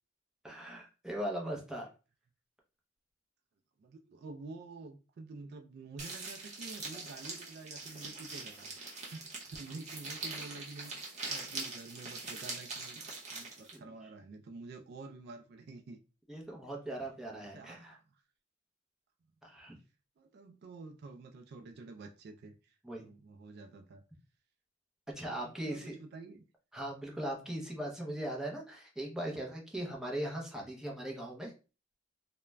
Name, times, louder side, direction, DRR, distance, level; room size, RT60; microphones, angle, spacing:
voice 1, 0.4-1.9 13.7-13.9 16.3-18.0 19.4-19.8 22.8-23.1 25.2-26.0 26.7-31.5, right 1 dB, 5° right, -2 dB, 0.6 m, -39 dB
voice 2, 3.8-8.7 9.1-16.0 17.4-18.2 20.2-22.8 23.0-24.0 25.4-26.4, right 3 dB, 60° right, 7 dB, 0.3 m, -49 dB
sound 1, 6.0-13.8, right 3 dB, 40° right, 0.8 m, -43 dB
2.3 x 2.1 x 3.1 m, 0.33 s
head